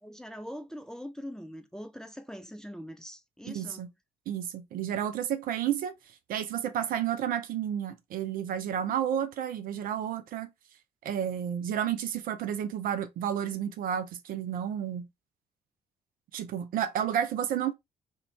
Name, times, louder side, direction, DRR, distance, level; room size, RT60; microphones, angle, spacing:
voice 1, 0.0-3.9, equal, 5° left, 0.4 m, -42 dB
voice 2, 3.4-3.9 4.3-5.9 6.3-10.5 11.0-15.1 16.3-17.7, right 9 dB, 55° right, 0.4 m, -31 dB
2.4 x 2.1 x 3.2 m
hypercardioid pair, 45°, 18 cm